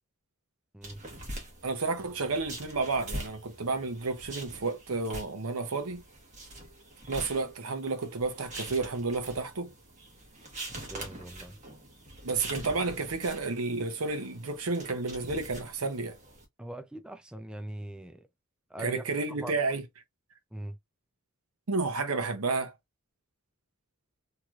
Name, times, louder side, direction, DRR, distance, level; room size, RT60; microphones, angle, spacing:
sound 1, 0.8-16.4, right 1 dB, 35° right, 1.2 m, -44 dB
voice 1, 1.6-6.0 7.1-9.7 12.2-16.2 18.8-19.8 21.7-22.7, right 3 dB, 90° right, 0.8 m, -31 dB
voice 2, 10.9-11.6 16.6-18.3 18.7-19.0 19.4-19.5 20.5-20.8, right 1 dB, 5° right, 0.3 m, -41 dB
3.0 x 2.9 x 2.4 m
head